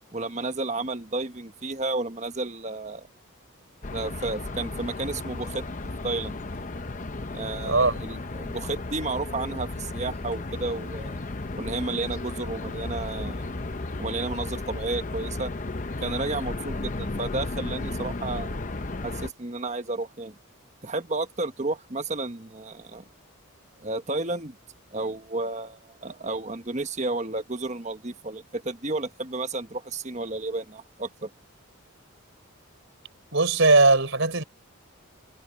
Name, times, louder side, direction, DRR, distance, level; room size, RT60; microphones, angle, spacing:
voice 1, 0.1-3.1 3.9-5.6 6.0-6.4 7.3-11.2 11.5-13.5 14.0-15.5 16.0-18.6 19.0-20.4 20.8-23.0 23.8-24.6 24.9-31.3, right 2 dB, 30° right, 1.3 m, -32 dB
sound 1, 3.8-19.3, left 2 dB, 35° left, 0.8 m, -34 dB
voice 2, 7.6-7.9 33.3-34.4, right 3 dB, 60° right, 4.5 m, -19 dB
head